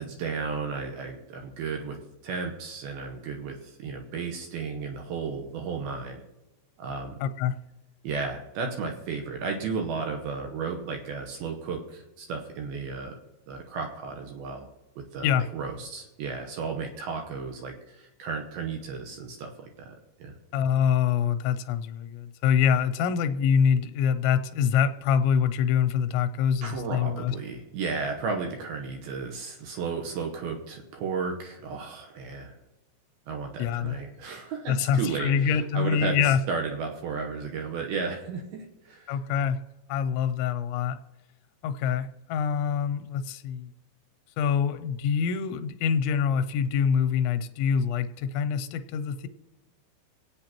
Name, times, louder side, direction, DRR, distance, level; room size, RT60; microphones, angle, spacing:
voice 1, 0.0-2.0 2.2-6.2 6.8-7.2 8.0-13.2 13.5-14.7 15.0-19.9 20.2-20.4 26.6-32.6 33.3-39.2, right 5 dB, 70° right, 2 dB, 2.6 m, -34 dB
voice 2, 7.2-7.6 15.2-15.4 20.5-27.4 33.6-34.0 34.7-36.4 39.1-39.6 39.9-41.0 41.6-43.7 44.4-49.3, left 7 dB, 85° left, 10 dB, 2.9 m, -25 dB
25.5 x 8.9 x 3.0 m, 1.0 s
omnidirectional pair, 5.1 m